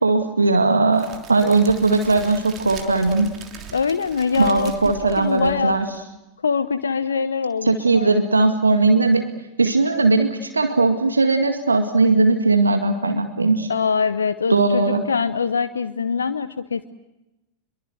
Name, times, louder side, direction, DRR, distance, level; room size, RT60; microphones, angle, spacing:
voice 1, 0.0-3.3 4.4-5.9 7.7-9.3 9.6-13.7 14.5-15.0, right 3 dB, 80° right, 6 dB, 2.0 m, -18 dB
Crackle, 0.9-6.0, right 6 dB, 30° right, 3.2 m, -40 dB
voice 2, 3.7-4.7 5.2-5.8 6.4-8.1 13.7-16.8, left 5 dB, 70° left, 11 dB, 0.9 m, -23 dB
25.5 x 23.0 x 7.8 m, 0.97 s
figure-of-eight pair, 90°, 0 cm